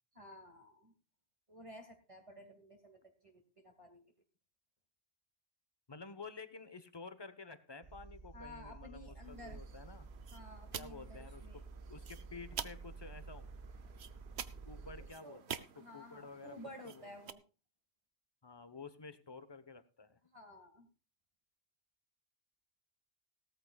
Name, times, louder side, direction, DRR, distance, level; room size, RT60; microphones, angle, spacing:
voice 1, 0.1-0.9 1.5-4.0 8.3-9.6 10.3-11.6 15.0-15.4 15.7-17.4 20.2-20.9, left 1 dB, 30° right, 2 dB, 2.3 m, -54 dB
voice 2, 5.9-10.1 10.7-11.6 11.9-13.5 14.7-15.7 15.9-16.6 16.8-17.1 18.4-20.2, left 4 dB, 25° left, 12 dB, 1.1 m, -51 dB
sound 1, 7.8-15.1, right 4 dB, 65° right, 1.7 m, -51 dB
sound 2, 9.2-17.3, right 8 dB, 85° right, 1.1 m, -49 dB
18.0 x 13.5 x 2.4 m, 0.33 s
omnidirectional pair, 1.1 m